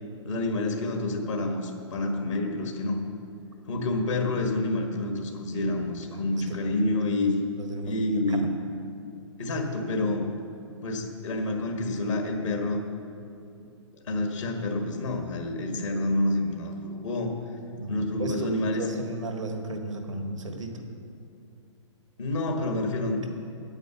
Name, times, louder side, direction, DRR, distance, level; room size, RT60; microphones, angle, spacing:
voice 1, 0.2-3.0 3.7-7.4 7.8-8.6 9.4-10.3 10.8-12.8 14.1-17.3 17.9-18.8 22.2-23.3, left 2 dB, 80° left, 3 dB, 1.7 m, -28 dB
voice 2, 6.1-6.6 7.6-8.5 17.7-20.8, right 2 dB, 90° right, 4 dB, 1.5 m, -35 dB
9.2 x 9.0 x 6.9 m, 2.5 s
hypercardioid pair, 130°, 16 cm